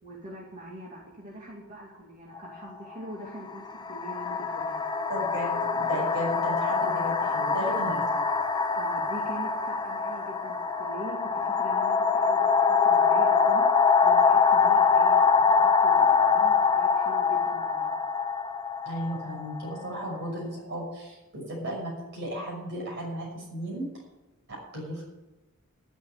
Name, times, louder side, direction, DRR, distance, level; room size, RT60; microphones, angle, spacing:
voice 1, 0.0-4.9 8.7-18.0, right 1 dB, 35° right, -4 dB, 2.5 m, -43 dB
sound 1, 2.4-2.5 3.5-20.1, left 5 dB, 20° left, 0.7 m, -24 dB
voice 2, 5.1-8.2 18.8-23.9 24.5-25.0, right 1 dB, 55° right, -4 dB, 6.2 m, -35 dB
12.0 x 7.1 x 9.7 m, 1.0 s
head